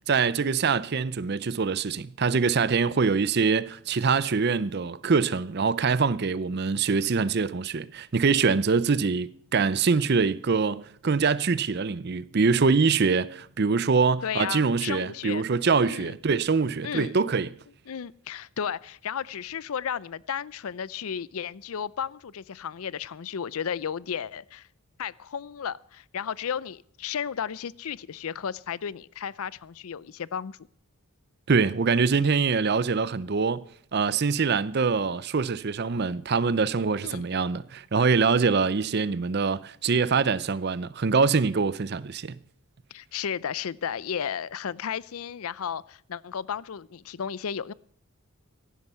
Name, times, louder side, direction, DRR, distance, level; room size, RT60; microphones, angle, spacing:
voice 1, 0.1-17.5 31.5-33.6 33.9-42.4, right 5 dB, 45° right, 0.5 m, -24 dB
voice 2, 14.2-15.4 15.8-16.2 16.8-17.2 17.9-24.7 25.0-30.6 37.0-37.2 42.9-47.7, left 7 dB, 75° left, 0.5 m, -33 dB
16.0 x 11.5 x 5.6 m
head